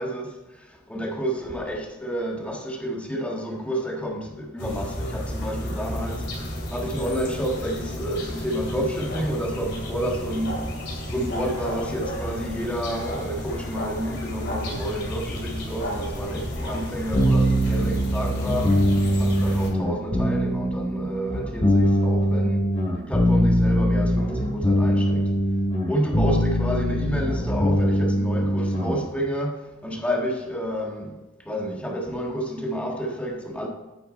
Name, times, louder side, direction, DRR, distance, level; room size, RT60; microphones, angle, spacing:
voice 1, 0.0-10.6 11.1-22.7 23.0-25.3 25.9-33.7, equal, 5° left, 1.5 m, -30 dB
sound 1, 4.6-19.7, equal, 65° left, 2.4 m, -32 dB
sound 2, 17.1-29.0, equal, 30° left, 2.2 m, -22 dB
9.4 x 6.0 x 4.2 m
head